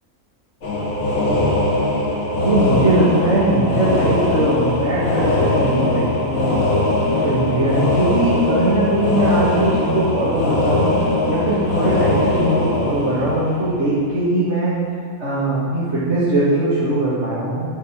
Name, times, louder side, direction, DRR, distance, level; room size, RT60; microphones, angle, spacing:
sound 1, 0.6-14.1, left 2 dB, 75° left, 2.2 m, -20 dB
voice 1, 2.4-6.6 7.1-11.0 11.2-14.7 15.2-17.6, right 1 dB, 50° right, -10 dB, 2.2 m, -20 dB
10.5 x 5.5 x 6.1 m, 2.1 s
omnidirectional pair, 1.5 m